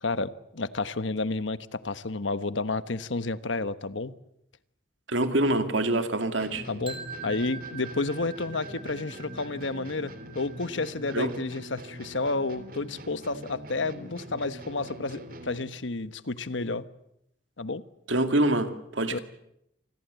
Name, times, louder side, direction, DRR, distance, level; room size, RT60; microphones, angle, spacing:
voice 1, 0.0-4.1 6.7-7.0 7.2-16.8 17.6-17.8 19.1-19.2, left 3 dB, 85° left, 14 dB, 1.2 m, -31 dB
voice 2, 5.1-6.6 11.1-11.3 18.1-19.2, right 1 dB, 85° right, 8 dB, 2.4 m, -25 dB
sound 1, 6.4-15.8, right 1 dB, 50° right, 3.0 m, -44 dB
sound 2, 6.9-12.8, right 5 dB, 30° right, 3.5 m, -45 dB
28.0 x 21.0 x 8.2 m, 0.79 s
head